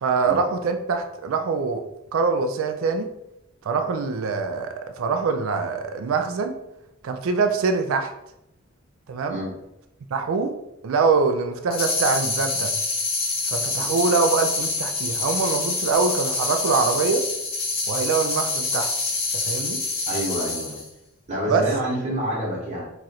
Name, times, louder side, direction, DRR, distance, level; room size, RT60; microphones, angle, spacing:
voice 1, 0.0-1.8 2.1-3.1 3.6-6.5 7.0-8.1 9.1-9.4 10.1-10.5 10.8-12.7 13.5-17.3 17.9-18.9 19.3-19.8 21.5-21.7, right 4 dB, 75° right, 6 dB, 0.4 m, -24 dB
sound 1, 11.7-20.9, left 3 dB, 50° left, 1.0 m, -26 dB
voice 2, 20.1-20.8 21.3-22.8, right 1 dB, 35° right, -6 dB, 1.0 m, -28 dB
3.0 x 2.4 x 4.1 m, 0.84 s
head